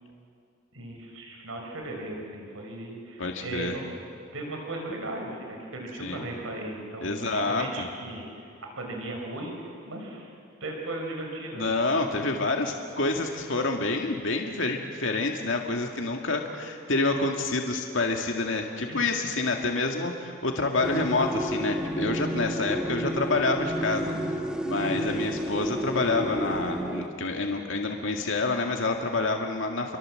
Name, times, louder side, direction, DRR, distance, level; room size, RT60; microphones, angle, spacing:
voice 1, 0.7-3.8 4.3-10.3 10.6-11.7 18.9-19.0 24.8-25.2, right 2 dB, 90° right, 1 dB, 5.4 m, -37 dB
voice 2, 3.2-3.8 6.0-6.2 7.0-7.9 11.5-24.4 24.7-30.0, left 3 dB, 65° left, 2 dB, 2.0 m, -28 dB
sound 1, 20.8-27.1, right 1 dB, 5° right, 1.4 m, -31 dB
30.0 x 24.0 x 7.8 m, 2.4 s
head